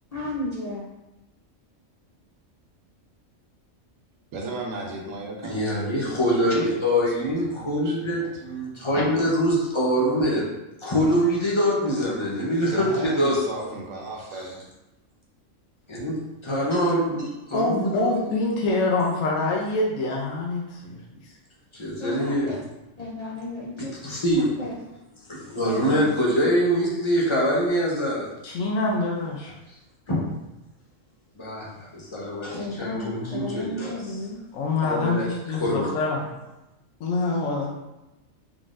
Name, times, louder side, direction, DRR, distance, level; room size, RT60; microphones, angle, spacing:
voice 1, 0.1-0.9 22.0-22.6 23.0-23.9 24.6-24.7 25.6-26.1 32.5-34.4, left 2 dB, 65° left, -6 dB, 0.4 m, -33 dB
voice 2, 4.3-5.6 6.1-6.8 7.1-8.4 12.7-14.6, right 2 dB, 75° right, 0 dB, 1.0 m, -36 dB
voice 3, 5.4-10.4 10.8-13.4 14.3-14.4 15.9-16.2 16.4-18.0 21.7-22.5 24.0-24.5 25.3-28.3 30.1-30.2 31.4-31.7 31.9-33.9 34.8-35.3 35.6-35.9, equal, 25° left, -5 dB, 0.8 m, -24 dB
voice 4, 17.5-21.3 28.4-29.5 32.9-33.5 34.5-36.3 37.0-37.7, left 2 dB, 80° left, -1 dB, 1.0 m, -26 dB
3.9 x 3.5 x 2.5 m, 0.96 s
omnidirectional pair, 1.4 m